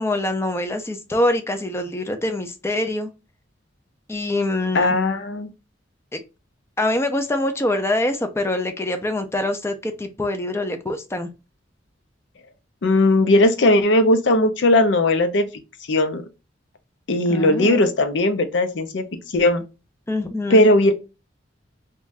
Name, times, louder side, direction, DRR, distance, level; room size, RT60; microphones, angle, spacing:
voice 1, 0.0-3.1 4.1-5.0 6.1-6.2 6.8-11.3 17.3-17.8 20.1-20.7, left 1 dB, 15° left, 0.5 m, -24 dB
voice 2, 4.7-5.5 12.8-15.5 15.9-16.2 17.1-19.6 20.5-20.9, left 1 dB, 65° left, 0.6 m, -18 dB
2.6 x 2.2 x 3.2 m
head